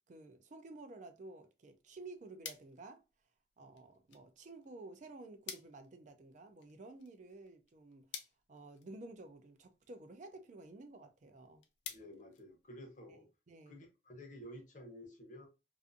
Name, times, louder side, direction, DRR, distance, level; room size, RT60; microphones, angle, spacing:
voice 1, 0.1-3.0 3.6-8.2 8.5-11.6 13.1-13.2 13.5-13.8, right 2 dB, 40° right, 0.4 m, -52 dB
sound 1, 1.7-13.2, left 8 dB, 80° left, 0.5 m, -54 dB
voice 2, 11.9-13.3 13.7-15.5, equal, 45° left, 0.7 m, -52 dB
2.5 x 2.4 x 2.5 m
head